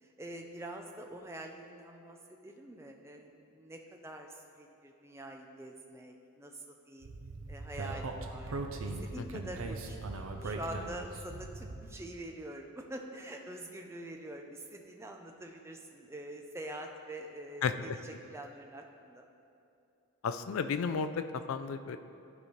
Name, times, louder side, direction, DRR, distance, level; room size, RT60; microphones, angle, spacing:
voice 1, 0.0-7.1 7.5-8.5 9.0-17.7 18.0-19.3, right 1 dB, 10° right, 2 dB, 0.4 m, -45 dB
Speech, 7.0-11.9, right 3 dB, 70° right, 0.6 m, -40 dB
voice 2, 17.6-18.0 20.2-22.0, left 5 dB, 70° left, 10 dB, 0.4 m, -33 dB
12.0 x 5.0 x 3.2 m, 2.7 s
head